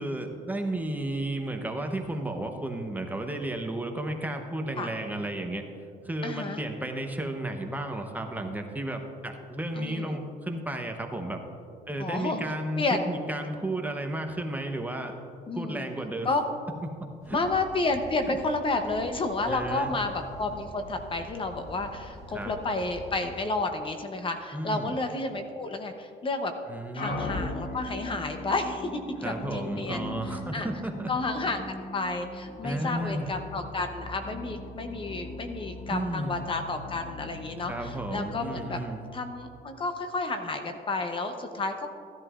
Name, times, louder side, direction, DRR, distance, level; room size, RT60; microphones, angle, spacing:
voice 1, 0.0-5.6 6.0-11.4 11.9-15.1 15.5-16.3 17.3-17.4 18.3-18.4 19.5-19.9 22.3-22.5 24.5-25.0 26.7-27.5 29.2-31.1 32.6-33.3 35.9-36.3 37.7-39.0, right 1 dB, 10° right, 3 dB, 0.9 m, -33 dB
voice 2, 6.2-6.6 9.8-10.2 12.0-12.4 12.8-13.1 15.5-15.9 16.2-16.4 17.3-26.5 26.9-30.1 30.5-30.7 31.1-38.8 39.1-41.9, left 3 dB, 30° left, 6 dB, 0.8 m, -31 dB
sound 1, 17.2-23.5, equal, 75° left, 2.3 m, -46 dB
sound 2, 27.0-39.8, left 2 dB, 50° left, 1.1 m, -40 dB
15.5 x 10.5 x 2.5 m, 2.3 s
cardioid pair, 110°, 17 cm